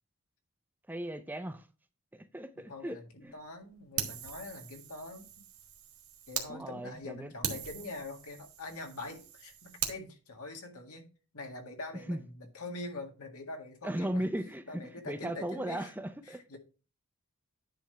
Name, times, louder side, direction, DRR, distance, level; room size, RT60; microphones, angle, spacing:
voice 1, 0.9-1.7 2.1-3.4 6.5-7.3 12.1-12.2 13.8-16.4, right 1 dB, 10° right, 0.4 m, -37 dB
voice 2, 2.6-5.3 6.3-11.1 11.3-14.2 14.7-15.9 16.3-16.6, left 2 dB, 80° left, 1.8 m, -44 dB
Fire, 4.0-6.5 6.9-7.0 7.4-10.0, right 8 dB, 65° right, 1.6 m, -40 dB
10.0 x 3.4 x 5.7 m
head